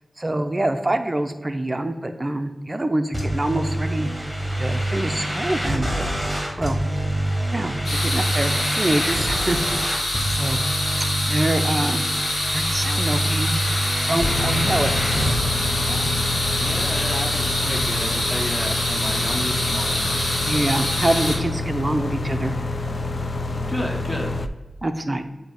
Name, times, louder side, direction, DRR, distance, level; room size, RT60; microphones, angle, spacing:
voice 1, 0.2-4.1 4.6-6.1 6.6-6.8 7.5-9.6 10.3-10.6 11.3-12.1 12.5-13.6 14.1-14.9 15.6-16.1 20.5-22.6 24.8-25.2, right 1 dB, 25° right, 7 dB, 0.5 m, -25 dB
sound 1, 3.1-15.4, right 1 dB, 5° left, 1.4 m, -26 dB
sound 2, 7.8-21.4, left 1 dB, 80° left, 1.7 m, -25 dB
sound 3, 14.2-24.5, left 2 dB, 45° left, 0.3 m, -27 dB
voice 2, 16.6-20.7 23.4-24.5, equal, 25° left, 0 dB, 1.1 m, -32 dB
7.3 x 2.8 x 5.3 m, 1.1 s
wide cardioid pair, 110°, 0 cm